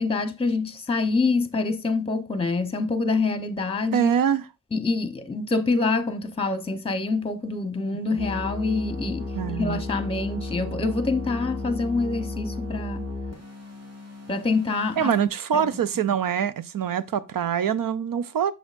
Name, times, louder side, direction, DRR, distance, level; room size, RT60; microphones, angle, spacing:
voice 1, 0.0-4.1 4.7-9.3 9.6-13.1 14.3-15.1 15.5-15.7, left 3 dB, 15° left, 0.9 m, -26 dB
voice 2, 3.9-4.5 9.3-9.7 15.0-18.5, right 8 dB, 80° right, 0.6 m, -24 dB
sound 1, 8.2-15.2, left 2 dB, 50° right, 2.4 m, -34 dB
6.9 x 6.2 x 2.5 m
cardioid pair, 50°, 33 cm